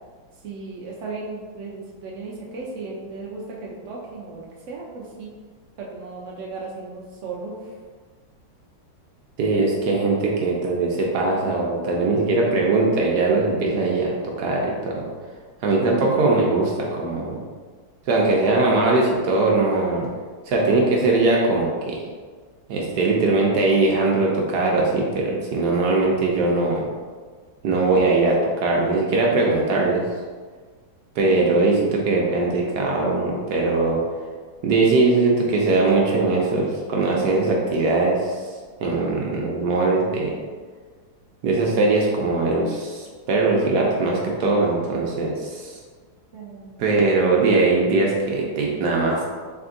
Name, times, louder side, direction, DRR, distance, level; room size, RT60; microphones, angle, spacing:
voice 1, 0.4-5.3 5.8-7.7 12.4-13.0 16.0-16.3 31.2-31.5 46.3-46.8, right 3 dB, 90° right, -2 dB, 0.6 m, -36 dB
voice 2, 9.4-15.1 15.6-17.4 18.1-20.1 20.5-22.0 22.7-26.9 27.6-30.1 31.2-34.0 34.6-38.4 38.8-40.4 41.4-45.7 46.8-49.2, right 3 dB, 70° right, -1 dB, 1.1 m, -21 dB
3.5 x 3.4 x 3.7 m, 1.5 s
omnidirectional pair, 2.1 m